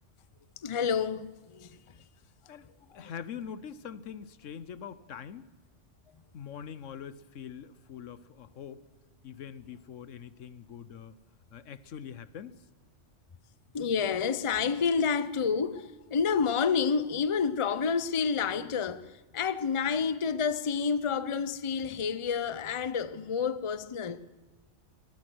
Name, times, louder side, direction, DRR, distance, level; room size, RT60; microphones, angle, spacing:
voice 1, 0.6-1.7 3.0-3.1 13.7-19.1 19.3-24.2, left 6 dB, 30° left, 0.6 m, -29 dB
voice 2, 2.5-5.5 6.3-8.8 9.2-11.1 11.5-12.6, left 8 dB, 85° left, 1.2 m, -43 dB
22.5 x 19.0 x 6.2 m
omnidirectional pair, 1.3 m